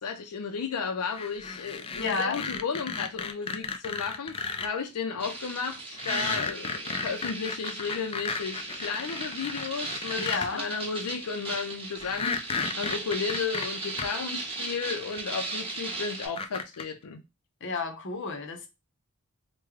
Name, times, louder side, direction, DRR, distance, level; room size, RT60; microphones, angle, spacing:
voice 1, 0.0-4.4 4.6-10.2 10.5-12.4 12.8-17.2, left 5 dB, 90° left, 0.5 m, -33 dB
sound 1, 1.1-4.7 5.9-10.5 12.0-14.1 15.2-15.3 16.2-16.8, left 5 dB, 25° left, 0.3 m, -34 dB
voice 2, 2.0-2.4 10.2-10.7 17.6-18.7, left 4 dB, 55° left, 0.7 m, -31 dB
sound 2, 5.2-16.3, right 3 dB, 25° right, 1.0 m, -37 dB
3.5 x 2.2 x 3.0 m
head